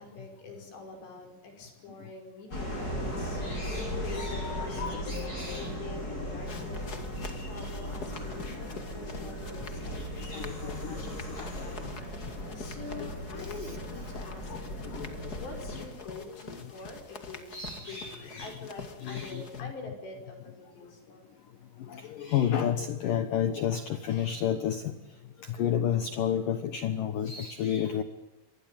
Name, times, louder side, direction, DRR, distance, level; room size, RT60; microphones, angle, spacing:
voice 1, 0.0-21.3, left 3 dB, 60° left, 4 dB, 7.5 m, -46 dB
sound 1, 2.5-15.9, equal, 20° left, 8.1 m, -37 dB
voice 2, 3.4-5.7 6.2-6.3 9.9-11.7 13.0-13.1 13.3-13.8 14.9-15.1 17.5-18.6 19.0-19.4 21.9-24.9 25.6-28.0, left 9 dB, 80° left, 11 dB, 1.9 m, -31 dB
sound 2, 6.4-19.6, left 4 dB, 40° left, 1.3 m, -46 dB
25.5 x 21.5 x 9.0 m, 1.1 s
omnidirectional pair, 5.7 m